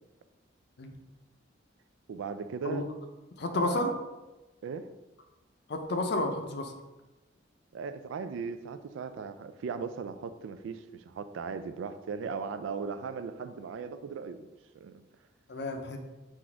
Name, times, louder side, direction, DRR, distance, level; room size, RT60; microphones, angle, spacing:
voice 1, 2.1-2.9 3.5-4.0 4.6-4.9 7.7-14.5 14.7-15.0, right 5 dB, 75° right, 11 dB, 0.3 m, -38 dB
voice 2, 3.4-3.9 5.7-6.7 15.5-16.0, left 2 dB, 55° left, 5 dB, 0.5 m, -31 dB
4.0 x 2.5 x 4.4 m, 1.1 s
head